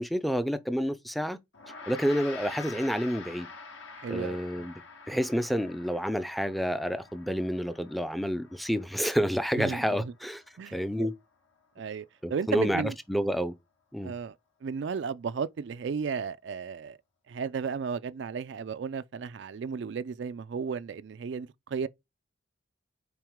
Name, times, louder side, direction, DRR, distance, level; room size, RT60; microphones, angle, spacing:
voice 1, 0.0-1.4 1.9-3.5 4.1-4.7 5.1-10.4 10.7-11.1 12.2-13.5 13.9-14.1, equal, ahead, 0.4 m, -29 dB
Gong, 1.5-11.2, left 4 dB, 75° left, 1.5 m, -47 dB
voice 2, 4.0-4.7 9.6-10.1 10.6-11.1 11.8-13.0 14.0-14.4 14.6-17.0 17.3-21.9, right 6 dB, 65° right, 0.4 m, -34 dB
5.9 x 4.7 x 3.6 m
head